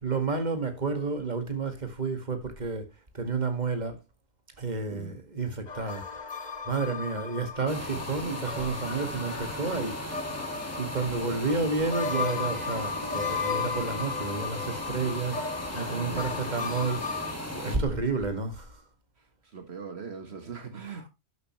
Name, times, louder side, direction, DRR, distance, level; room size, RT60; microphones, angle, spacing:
voice 1, 0.0-2.9 3.1-4.0 4.6-6.0 6.7-10.0 10.8-15.4 15.7-18.8, right 4 dB, 40° right, 2.1 m, -30 dB
sound 1, 5.7-17.3, left 5 dB, 40° left, 1.2 m, -35 dB
sound 2, 7.7-17.8, equal, 15° left, 2.2 m, -37 dB
voice 2, 15.9-16.9 19.2-21.1, right 5 dB, 70° right, 1.7 m, -42 dB
12.0 x 8.1 x 3.1 m
omnidirectional pair, 1.1 m